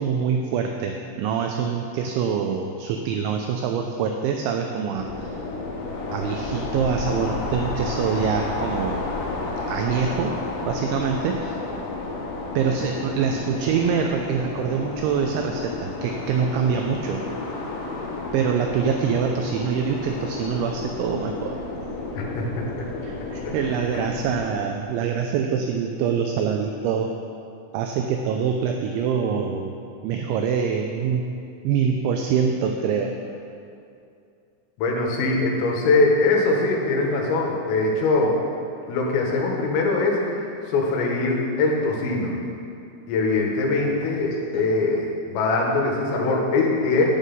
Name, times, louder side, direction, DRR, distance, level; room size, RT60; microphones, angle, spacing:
voice 1, 0.0-5.4 6.1-9.0 9.7-10.3 10.6-11.6 12.6-17.2 18.3-21.6 23.0-27.1 27.7-29.7 30.0-31.3 31.6-33.1 44.5-44.6, right 7 dB, 80° right, 3 dB, 2.8 m, -25 dB
sound 1, 5.0-24.5, left 3 dB, 70° left, 3.9 m, -31 dB
voice 2, 22.2-22.8 23.5-23.6 23.9-24.0 34.8-38.4 38.9-42.3 43.1-47.1, left 3 dB, 90° left, -1 dB, 4.2 m, -22 dB
11.0 x 9.2 x 5.4 m, 2.5 s
omnidirectional pair, 5.8 m